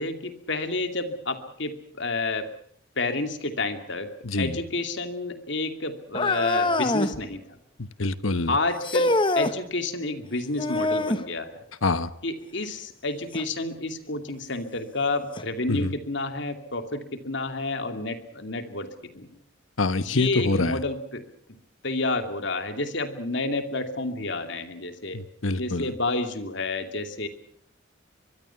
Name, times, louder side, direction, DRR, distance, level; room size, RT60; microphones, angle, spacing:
voice 1, 0.0-2.5 3.0-4.1 4.4-7.4 8.5-11.6 12.2-19.4 20.0-21.2 21.8-25.2 25.6-27.3, left 2 dB, 60° left, 8 dB, 2.5 m, -30 dB
voice 2, 4.2-4.6 7.8-8.6 11.8-12.1 15.7-15.9 19.8-20.8 25.1-25.9, left 3 dB, 85° left, 14 dB, 1.2 m, -26 dB
sound 1, 6.1-7.2 8.8-9.6 10.6-11.3 13.3-13.4 14.3-14.4 15.4-15.5, left 2 dB, 25° left, 1.2 m, -24 dB
24.0 x 23.0 x 5.9 m, 0.66 s
head